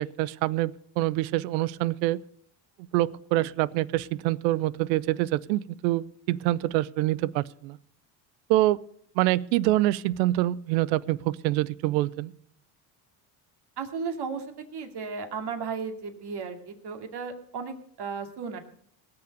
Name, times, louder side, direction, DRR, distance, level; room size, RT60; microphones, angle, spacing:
voice 1, 0.0-2.2 2.9-7.8 8.5-8.8 9.2-12.3, right 16 dB, 85° right, 21 dB, 0.6 m, -26 dB
voice 2, 13.8-14.4 14.7-18.6, right 5 dB, 50° right, 5 dB, 2.5 m, -34 dB
19.0 x 6.9 x 6.5 m, 0.66 s
supercardioid pair, 75°, 50 cm